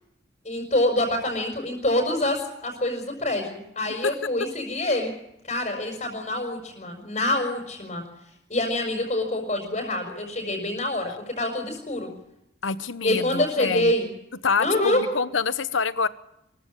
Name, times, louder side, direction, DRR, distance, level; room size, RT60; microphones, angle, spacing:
voice 1, 0.4-5.1 5.5-8.0 8.5-12.1 13.0-14.1 14.6-15.0, left 1 dB, 35° left, 1 dB, 5.6 m, -26 dB
voice 2, 12.6-13.9 14.4-16.1, left 5 dB, 85° left, 14 dB, 1.0 m, -26 dB
24.5 x 15.0 x 9.1 m, 0.83 s
head